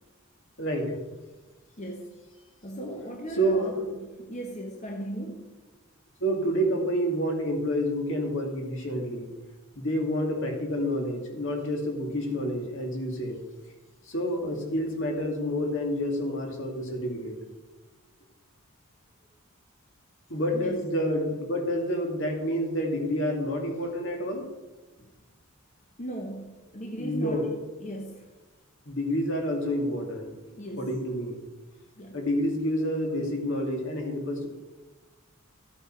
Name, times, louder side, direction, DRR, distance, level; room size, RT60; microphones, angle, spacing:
voice 1, 0.6-1.0 3.3-3.8 6.2-9.3 9.8-13.4 14.1-17.4 20.3-24.5 26.9-27.5 28.9-30.3 30.8-31.4 32.1-34.5, equal, 60° left, 1 dB, 2.2 m, -28 dB
voice 2, 1.8-2.2 2.6-5.6 14.5-14.6 20.5-20.8 25.0-25.1 26.0-27.5 27.8-28.3 30.6-31.0 32.0-32.2, right 1 dB, 35° left, 1 dB, 1.1 m, -38 dB
13.5 x 8.7 x 4.6 m, 1.2 s
head